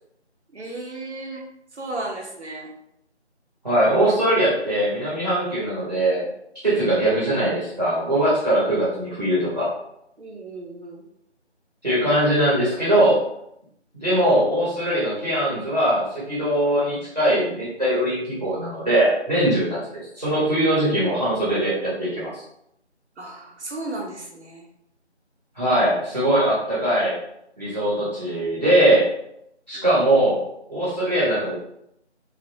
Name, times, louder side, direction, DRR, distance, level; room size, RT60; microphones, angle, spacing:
voice 1, 0.5-2.7 10.2-11.1 23.2-24.7 29.7-29.9, right 2 dB, 70° right, 0 dB, 0.7 m, -35 dB
voice 2, 3.6-6.3 6.6-9.7 11.8-13.2 13.9-19.8 20.2-22.4 25.5-27.1 27.6-29.1 29.7-30.4 30.7-31.5, right 1 dB, 35° right, -9 dB, 0.9 m, -21 dB
2.3 x 2.1 x 2.6 m, 0.77 s
figure-of-eight pair, 170°, 35 cm